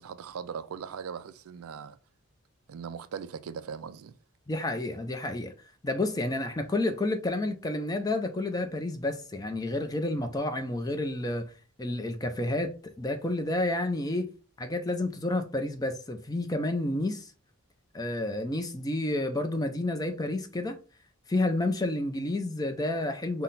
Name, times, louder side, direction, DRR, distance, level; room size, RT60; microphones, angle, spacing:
voice 1, 0.0-2.0 2.7-4.1, right 7 dB, 80° right, 0.4 m, -39 dB
voice 2, 4.5-5.5 5.8-11.5 11.8-12.7 13.0-14.3 14.6-17.3 17.9-20.8 21.3-23.4, left 2 dB, 15° left, 0.5 m, -30 dB
5.6 x 2.1 x 4.0 m
head